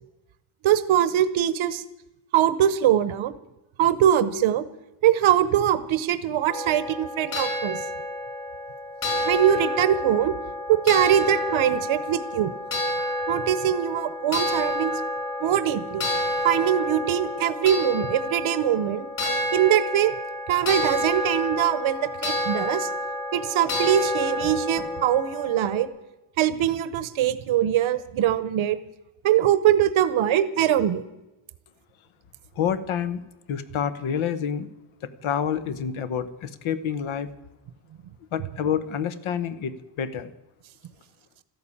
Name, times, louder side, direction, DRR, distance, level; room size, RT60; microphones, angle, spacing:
voice 1, 0.6-1.8 2.3-3.3 3.8-4.7 5.0-7.8 9.2-10.4 10.7-12.5 13.3-14.9 15.4-16.1 16.4-19.1 19.5-20.1 20.5-22.9 23.3-25.9 26.4-28.8 29.2-31.0, right 11 dB, 80° right, 14 dB, 1.0 m, -22 dB
sound 1, 6.5-25.9, left 1 dB, 45° left, 5.4 m, -29 dB
voice 2, 32.6-33.2 33.5-34.7 35.0-37.3 38.3-40.3, left 8 dB, 90° left, 12 dB, 1.2 m, -28 dB
13.5 x 11.5 x 8.5 m, 0.98 s
wide cardioid pair, 155°, 47 cm